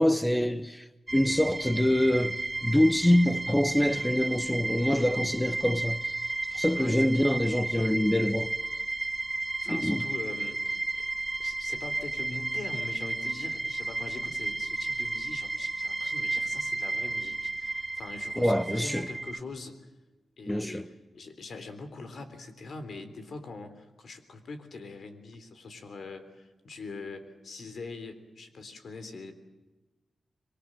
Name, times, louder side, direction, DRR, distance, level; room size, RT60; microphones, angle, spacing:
voice 1, 0.0-6.2 6.5-8.5 9.7-10.0 18.4-19.1 20.5-20.9, left 1 dB, 5° left, 0.9 m, -25 dB
sound 1, 1.1-19.4, right 2 dB, 20° right, 1.5 m, -33 dB
voice 2, 6.8-7.3 9.6-11.1 11.4-19.9 20.4-29.3, left 3 dB, 65° left, 3.6 m, -43 dB
26.0 x 23.0 x 7.6 m
wide cardioid pair, 105°, 0 cm